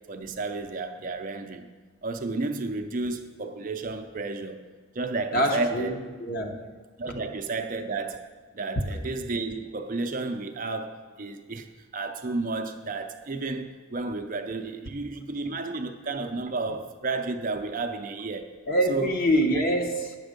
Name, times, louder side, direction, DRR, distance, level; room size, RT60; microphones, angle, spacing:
voice 1, 0.1-1.7 2.0-4.6 4.9-5.9 7.0-8.3 8.5-11.7 11.9-18.5 18.9-19.1, right 3 dB, 40° right, 6 dB, 0.5 m, -32 dB
voice 2, 5.3-6.7 7.1-7.2 15.5-15.6 18.7-20.2, equal, 45° left, 3 dB, 0.9 m, -25 dB
8.9 x 7.1 x 5.2 m, 1.4 s
head